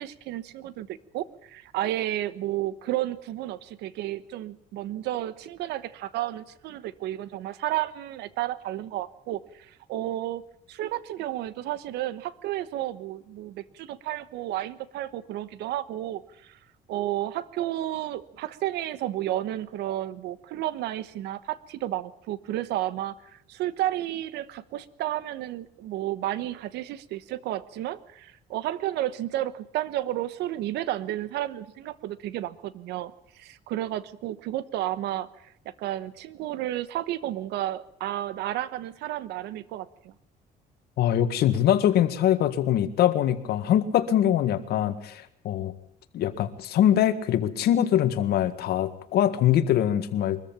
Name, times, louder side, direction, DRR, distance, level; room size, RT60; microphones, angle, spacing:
voice 1, 0.0-10.4 10.7-16.6 16.9-35.3 35.6-40.1 44.7-44.9, right 14 dB, 85° right, 16 dB, 1.2 m, -32 dB
voice 2, 41.0-45.7 46.1-50.4, left 11 dB, 70° left, 10 dB, 1.8 m, -23 dB
23.0 x 14.0 x 8.9 m, 0.71 s
cardioid pair, 110°, 17 cm